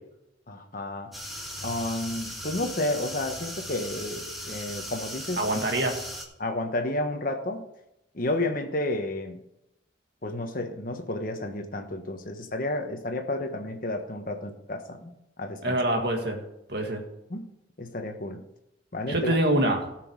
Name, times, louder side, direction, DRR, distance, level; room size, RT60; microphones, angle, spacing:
voice 1, 0.5-1.1 1.6-5.4 6.4-7.6 8.1-9.4 10.2-15.1 15.4-15.8 17.3-17.4 17.8-18.4 18.9-19.3, left 1 dB, 45° left, 5 dB, 1.3 m, -31 dB
sound 1, 1.1-6.2, equal, ahead, 1.7 m, -38 dB
voice 2, 5.4-6.1 15.6-16.4 16.7-17.0 19.1-19.9, right 1 dB, 55° right, 3 dB, 2.0 m, -25 dB
17.5 x 6.2 x 4.8 m, 0.87 s
head